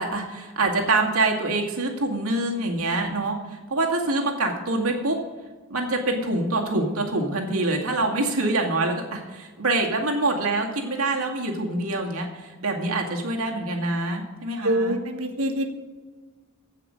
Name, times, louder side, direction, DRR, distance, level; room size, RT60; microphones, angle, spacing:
voice 1, 0.0-3.4 3.7-5.2 5.7-12.3 12.6-15.0, right 2 dB, 90° right, 1 dB, 2.2 m, -25 dB
voice 2, 14.6-15.7, right 1 dB, 75° right, 6 dB, 1.3 m, -25 dB
16.0 x 5.8 x 6.4 m, 1.4 s
head